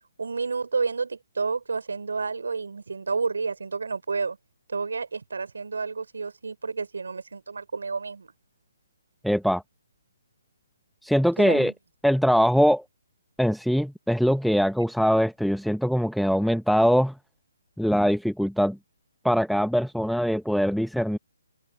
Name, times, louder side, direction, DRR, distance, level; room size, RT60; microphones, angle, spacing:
voice 1, 0.2-4.4 4.7-8.3 11.4-11.7, right 4 dB, 70° right, 4.1 m, -30 dB
voice 2, 9.2-9.6 11.0-11.7 12.0-12.8 13.4-17.2 17.8-18.8 19.2-21.2, equal, ahead, 1.1 m, -22 dB
figure-of-eight pair, 140°, 0 cm